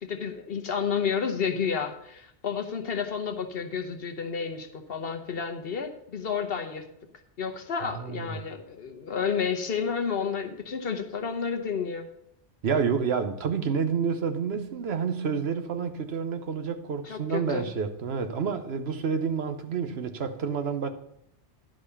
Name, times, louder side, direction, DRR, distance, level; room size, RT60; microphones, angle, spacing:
voice 1, 0.0-6.8 7.4-12.1 17.0-17.7, left 6 dB, 60° left, 6 dB, 1.1 m, -31 dB
voice 2, 7.8-8.4 12.6-20.9, right 6 dB, 65° right, 8 dB, 1.1 m, -29 dB
11.0 x 5.1 x 6.8 m, 0.74 s
omnidirectional pair, 1.1 m